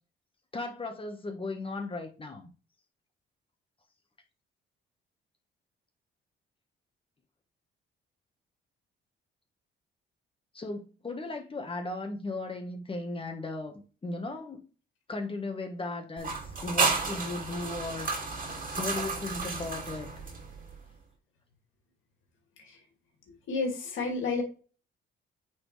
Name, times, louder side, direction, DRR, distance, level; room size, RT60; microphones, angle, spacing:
voice 1, 0.5-2.5 10.5-14.6 15.1-16.4 16.6-18.5 18.8-20.1, left 2 dB, 25° left, 1.4 m, -36 dB
sound 1, 16.2-20.8, right 4 dB, 45° right, 2.4 m, -32 dB
voice 2, 23.5-24.4, left 4 dB, 80° left, 2.4 m, -30 dB
8.6 x 4.2 x 3.3 m
cardioid pair, 90°, 20 cm